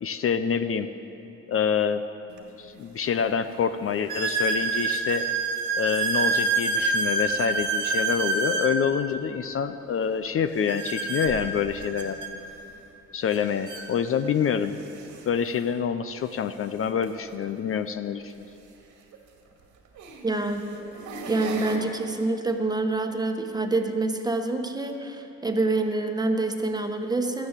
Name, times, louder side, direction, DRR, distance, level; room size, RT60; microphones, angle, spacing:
voice 1, 0.0-0.9 1.5-2.0 2.6-5.3 5.8-12.4 13.1-14.8 15.3-18.3, left 7 dB, 45° left, 10 dB, 0.6 m, -27 dB
sound 1, 2.4-2.5 3.1-3.2 4.1-8.7 10.7-12.3 13.3-13.4 13.7-13.9 14.6-14.7 17.0-17.1 19.1-19.2 20.0-20.3 20.8-21.8, right 3 dB, 80° right, 2.0 m, -27 dB
voice 2, 20.2-20.8 21.3-27.5, right 2 dB, 15° right, 5 dB, 1.2 m, -27 dB
13.0 x 10.5 x 7.3 m, 2.9 s
cardioid pair, 90°, 30 cm